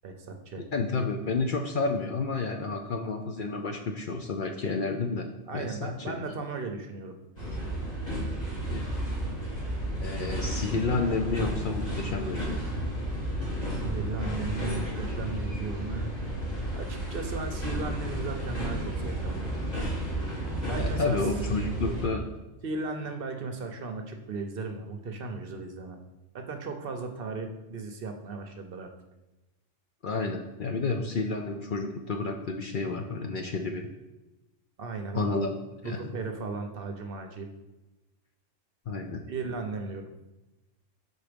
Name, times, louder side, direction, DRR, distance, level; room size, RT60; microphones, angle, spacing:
voice 1, 0.0-0.6 5.5-7.2 13.8-16.1 16.7-19.8 20.7-21.3 21.8-22.0 22.6-26.0 26.3-28.9 34.8-35.3 35.8-37.5 39.3-40.1, right 3 dB, 55° right, 5 dB, 0.8 m, -36 dB
voice 2, 0.7-6.2 8.7-8.8 10.0-12.6 20.8-22.2 30.0-33.9 35.1-35.6 35.8-36.2 38.9-39.2, left 3 dB, 60° left, 3 dB, 0.5 m, -30 dB
sound 1, 7.4-22.1, right 1 dB, 35° left, 2.1 m, -32 dB
5.9 x 4.1 x 5.0 m, 1.0 s
omnidirectional pair, 1.3 m